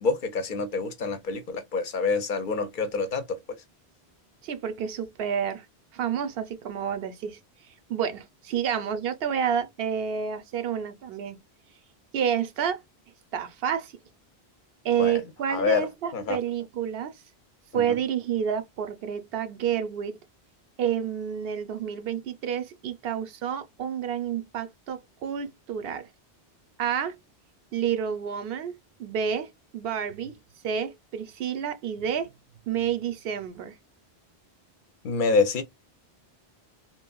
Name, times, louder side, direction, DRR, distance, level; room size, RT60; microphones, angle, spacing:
voice 1, 0.0-3.4 15.0-15.2 15.5-15.9 16.1-16.4 17.7-18.0 35.0-35.6, left 4 dB, 60° left, 0.6 m, -26 dB
voice 2, 4.4-5.7 5.9-7.4 7.9-11.4 12.1-12.8 13.3-13.9 14.8-17.2 17.7-20.2 20.8-26.1 26.8-27.2 27.7-28.7 29.0-30.4 30.6-32.3 32.7-33.8, right 8 dB, 70° right, 0.8 m, -29 dB
3.0 x 2.5 x 2.2 m
omnidirectional pair, 1.1 m